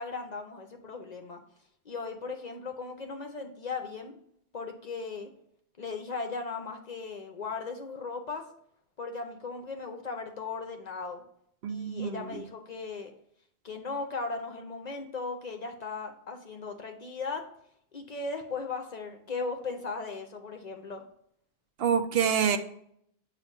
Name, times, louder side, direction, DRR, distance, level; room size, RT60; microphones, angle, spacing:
voice 1, 0.0-1.4 1.9-4.1 4.5-5.3 5.8-8.5 9.0-11.2 11.7-13.1 13.6-17.5 17.9-21.0, left 4 dB, 50° left, 5 dB, 0.6 m, -37 dB
voice 2, 11.6-12.2 21.8-22.6, right 7 dB, 70° right, 8 dB, 0.8 m, -26 dB
7.3 x 2.5 x 5.3 m, 0.69 s
omnidirectional pair, 1.1 m